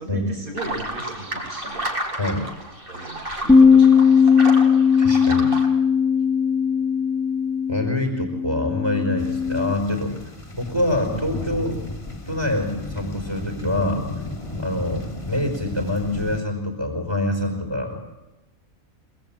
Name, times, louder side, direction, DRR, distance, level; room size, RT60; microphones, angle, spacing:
voice 1, 0.0-1.9 2.9-4.3, right 1 dB, 85° right, 2 dB, 6.3 m, -36 dB
sound 1, 0.6-5.7, right 1 dB, 40° right, 4.3 m, -31 dB
Bass guitar, 3.5-9.7, left 6 dB, 5° left, 0.9 m, -18 dB
voice 2, 5.0-5.5 7.7-10.1 10.5-11.8 12.3-14.0 14.6-18.0, left 1 dB, 20° right, 3 dB, 5.0 m, -25 dB
sound 2, 9.2-16.4, left 2 dB, 20° left, 2.1 m, -34 dB
25.5 x 19.5 x 9.1 m, 1.0 s
omnidirectional pair, 1.5 m